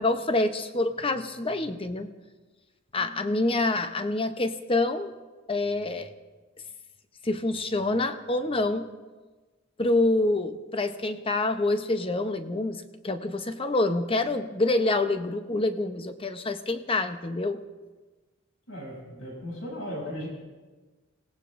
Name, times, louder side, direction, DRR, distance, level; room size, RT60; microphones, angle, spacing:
voice 1, 0.0-2.1 2.9-5.1 5.5-6.1 7.2-8.9 9.8-17.6, left 2 dB, 25° left, 9 dB, 0.7 m, -27 dB
voice 2, 18.7-20.3, equal, 80° left, -4 dB, 7.0 m, -36 dB
27.5 x 18.0 x 2.6 m, 1.3 s
head